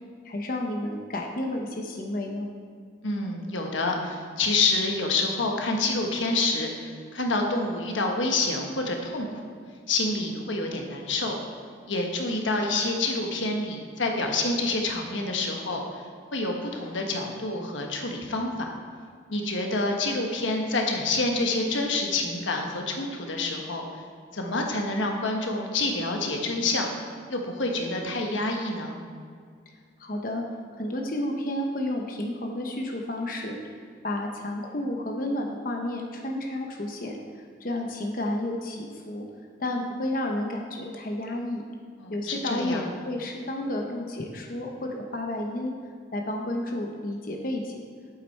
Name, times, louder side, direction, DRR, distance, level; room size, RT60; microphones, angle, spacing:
voice 1, 0.2-2.5 30.0-30.4 30.7-33.6 34.0-39.3 39.6-41.6 42.1-45.7 46.1-47.8, left 1 dB, 50° left, 1 dB, 0.8 m, -31 dB
voice 2, 3.0-9.4 9.9-11.4 11.9-15.8 16.3-18.7 19.3-23.8 24.3-26.9 27.3-29.0 42.0-42.8, left 2 dB, 90° left, 2 dB, 1.2 m, -27 dB
8.4 x 7.8 x 4.5 m, 2.1 s
head